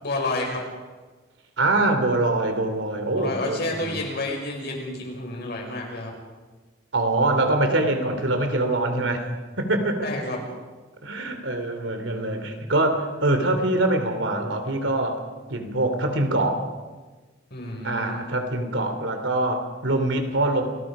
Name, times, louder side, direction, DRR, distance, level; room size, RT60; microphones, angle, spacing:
voice 1, 0.0-0.6 3.1-6.1 10.0-10.4 17.5-18.2, left 2 dB, 55° left, 0 dB, 5.9 m, -30 dB
voice 2, 1.6-4.0 6.9-9.2 9.6-10.1 11.0-15.2 15.5-16.6 17.8-20.6, right 2 dB, 75° right, 6 dB, 3.2 m, -24 dB
28.5 x 19.0 x 5.1 m, 1.3 s
head